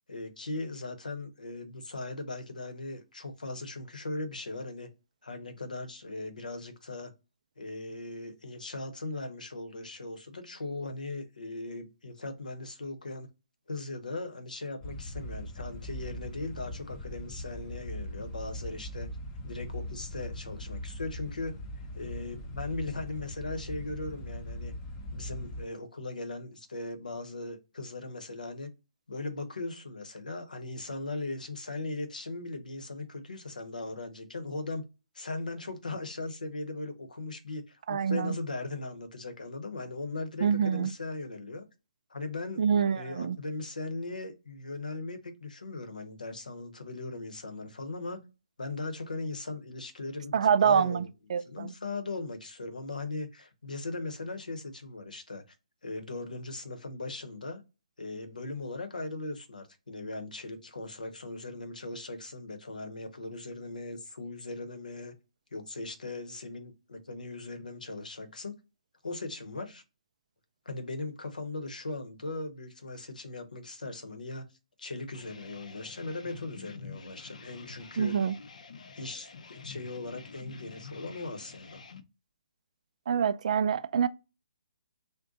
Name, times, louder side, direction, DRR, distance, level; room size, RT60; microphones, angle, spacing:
voice 1, 0.1-4.9 5.2-7.1 7.6-13.3 13.7-19.1 19.4-24.7 25.1-28.7 29.1-34.8 35.1-41.7 42.1-42.7 43.0-48.3 48.6-51.1 51.5-55.4 55.8-57.6 58.0-65.1 65.5-68.6 69.0-69.8 70.6-74.5 74.8-78.1 79.0-81.8, left 2 dB, 85° left, 0.8 m, -39 dB
sound 1, 14.8-25.6, left 1 dB, 25° left, 0.6 m, -40 dB
voice 2, 37.9-38.3 40.4-40.9 42.6-43.4 50.3-51.7 78.0-78.4 83.1-84.1, right 7 dB, 55° right, 0.3 m, -26 dB
sound 2, 75.1-82.0, left 5 dB, 65° left, 0.5 m, -48 dB
2.6 x 2.1 x 3.7 m
figure-of-eight pair, 140°, 4 cm